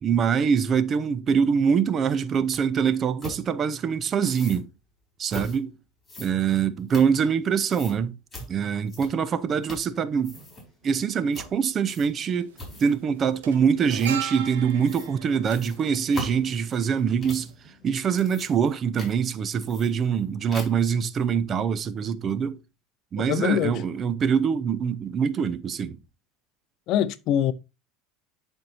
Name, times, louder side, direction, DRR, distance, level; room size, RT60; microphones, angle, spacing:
voice 1, 0.0-4.7 5.2-5.8 6.2-8.2 8.5-10.4 10.8-17.5 17.8-22.6 23.1-26.0, right 7 dB, 35° right, 0.6 m, -24 dB
sound 1, 2.5-2.6 3.2-3.4 4.2-4.6 5.3-5.6 6.0-7.4 7.7-8.0 8.3-8.5 8.9-9.3 9.6-9.9 10.2-10.6 11.3-11.5 11.9-12.2 12.6-13.0 13.9-14.2 14.8-15.1 15.4-17.5 18.0-18.7 19.0-19.1 19.6-20.2 20.5-20.9, left 1 dB, 15° left, 4.0 m, -40 dB
sound 2, 9.2-19.1 19.6-19.9, right 1 dB, 10° right, 4.6 m, -57 dB
sound 3, 10.9-11.0 12.2-12.5 12.8-17.1 17.4-17.5, right 9 dB, 90° right, 1.3 m, -38 dB
voice 2, 23.2-23.8 26.9-27.5, left 10 dB, 55° left, 0.5 m, -24 dB
10.5 x 4.5 x 2.7 m
supercardioid pair, 110°, 0 cm